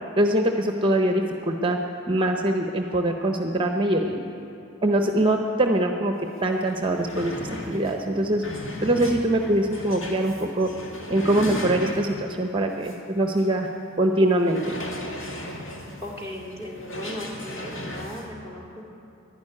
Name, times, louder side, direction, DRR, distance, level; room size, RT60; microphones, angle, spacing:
voice 1, 0.2-1.8 2.1-4.2 4.8-6.1 6.4-8.4 8.8-10.7 11.1-13.7 14.0-14.8, right 1 dB, 25° right, 4 dB, 0.7 m, -23 dB
sound 1, 6.3-6.4 6.6-12.3 12.8-13.0 13.4-13.5 14.4-18.3, left 1 dB, 60° left, 1.9 m, -35 dB
voice 2, 16.0-18.9, left 1 dB, 25° left, -1 dB, 2.1 m, -37 dB
11.5 x 11.5 x 9.8 m, 2.8 s
head